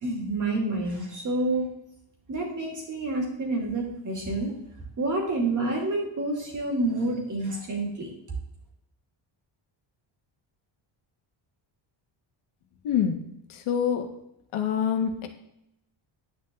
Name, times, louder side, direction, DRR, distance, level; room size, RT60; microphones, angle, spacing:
voice 1, 0.0-1.7 2.3-4.5 5.0-8.1, right 2 dB, 35° right, 0 dB, 2.7 m, -28 dB
voice 2, 12.8-13.2 13.5-14.1 14.5-15.3, left 8 dB, 90° left, 5 dB, 1.6 m, -25 dB
10.0 x 8.8 x 3.8 m, 0.79 s
cardioid pair, 170°, 49 cm